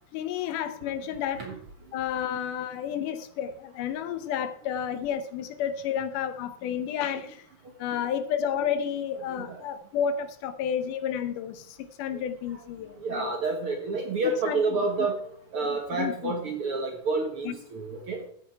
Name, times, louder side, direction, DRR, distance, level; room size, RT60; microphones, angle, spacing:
voice 1, 0.1-1.5 1.9-7.5 7.8-13.4 14.5-14.8 15.6-16.3 17.5-17.6, left 8 dB, 75° left, 11 dB, 2.2 m, -31 dB
voice 2, 9.3-9.7 12.5-12.7 13.0-15.2 15.5-18.2, right 3 dB, 55° right, 3 dB, 1.8 m, -29 dB
14.0 x 8.9 x 4.6 m, 0.64 s
omnidirectional pair, 3.9 m